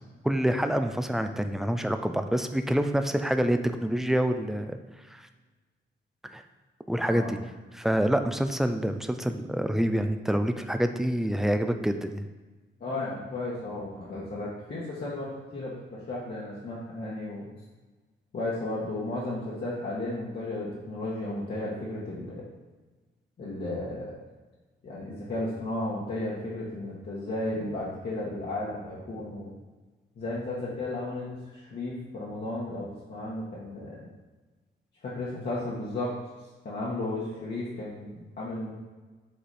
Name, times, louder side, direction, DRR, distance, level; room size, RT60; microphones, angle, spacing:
voice 1, 0.2-4.8 6.3-6.4 6.9-7.4 7.7-12.2, equal, ahead, 7 dB, 0.4 m, -26 dB
voice 2, 7.0-7.3 12.8-17.5 18.3-22.4 23.4-24.1 24.8-29.5 30.2-34.1 35.0-36.1 36.6-38.7, left 2 dB, 55° left, -7 dB, 1.5 m, -34 dB
7.9 x 5.0 x 4.2 m, 1.3 s
wide cardioid pair, 180°, 20 cm